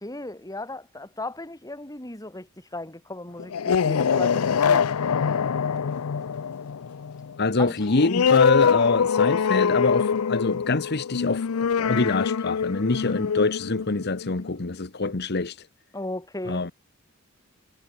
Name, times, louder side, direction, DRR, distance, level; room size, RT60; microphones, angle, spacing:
voice 1, 0.0-4.9 7.6-7.7 15.9-16.7, left 2 dB, 15° left, 2.3 m, -36 dB
sound 1, 3.4-14.6, left 6 dB, 85° left, 0.5 m, -24 dB
voice 2, 7.4-15.7 16.5-16.7, left 3 dB, 50° left, 1.1 m, -25 dB
head